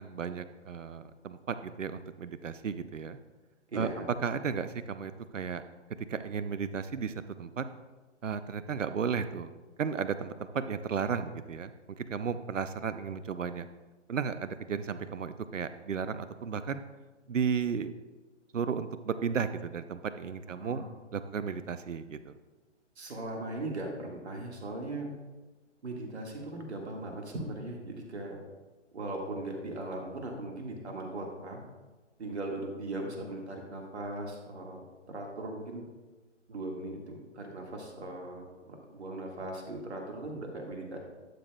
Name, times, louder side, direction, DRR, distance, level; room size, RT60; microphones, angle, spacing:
voice 1, 0.0-3.2 3.7-3.9 4.2-5.6 6.1-7.7 8.2-9.5 9.8-11.7 12.0-13.7 14.1-16.8 17.3-17.9 18.5-22.3, right 6 dB, 85° right, 12 dB, 0.6 m, -34 dB
voice 2, 3.7-4.1 20.6-20.9 23.0-25.1 25.8-28.4 28.9-31.6 32.2-35.9 36.5-41.0, right 2 dB, 60° right, 1 dB, 1.8 m, -39 dB
11.5 x 6.6 x 2.3 m, 1.2 s
figure-of-eight pair, 135°, 37 cm